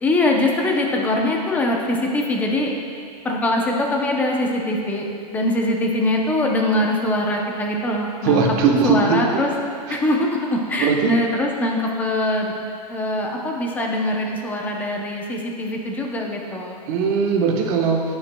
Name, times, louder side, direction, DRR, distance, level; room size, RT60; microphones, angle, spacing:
voice 1, 0.0-2.7 3.2-8.4 8.8-9.5 9.9-12.5 12.9-16.8, left 1 dB, 10° left, 0 dB, 0.6 m, -22 dB
voice 2, 8.2-9.2 9.9-10.0 10.8-11.2 16.9-18.0, right 5 dB, 30° right, 0 dB, 1.1 m, -19 dB
16.5 x 7.1 x 2.2 m, 2.2 s
supercardioid pair, 170°, 21 cm